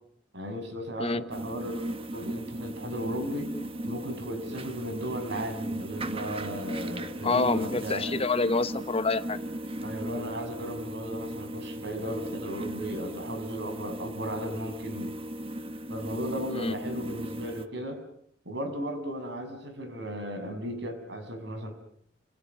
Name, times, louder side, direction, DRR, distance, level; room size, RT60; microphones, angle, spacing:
voice 1, 0.3-1.9 2.1-8.0 9.8-15.1 15.9-18.0 18.4-21.7, equal, 70° right, 7 dB, 6.9 m, -36 dB
sound 1, 1.3-17.7, right 1 dB, 30° right, 1.5 m, -37 dB
voice 2, 7.2-9.4 16.5-16.7, left 3 dB, 30° left, 11 dB, 1.2 m, -27 dB
29.5 x 28.0 x 6.3 m, 0.69 s
head